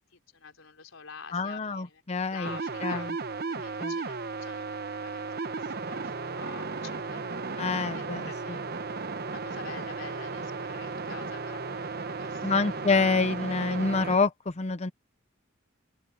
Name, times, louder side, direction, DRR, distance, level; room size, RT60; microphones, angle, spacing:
voice 1, 0.0-2.0 2.3-3.2 3.5-4.8 5.0-8.6 9.2-12.8, left 5 dB, 80° left, 3.8 m, -48 dB
voice 2, 1.3-2.5 2.8-3.0 3.8-3.9 7.6-8.2 12.4-14.3 14.6-14.9, left 4 dB, 35° left, 0.6 m, -26 dB
sound 1, 2.4-14.2, right 4 dB, 50° right, 0.9 m, -35 dB
open air
head